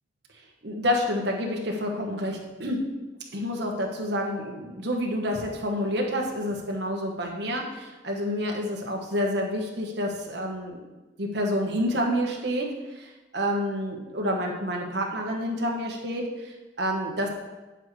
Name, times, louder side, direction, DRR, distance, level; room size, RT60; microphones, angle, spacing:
voice 1, 0.6-2.8 3.3-10.8 11.2-12.7 13.0-17.3, equal, 70° right, 0 dB, 1.3 m, -28 dB
8.9 x 7.3 x 3.3 m, 1.1 s
head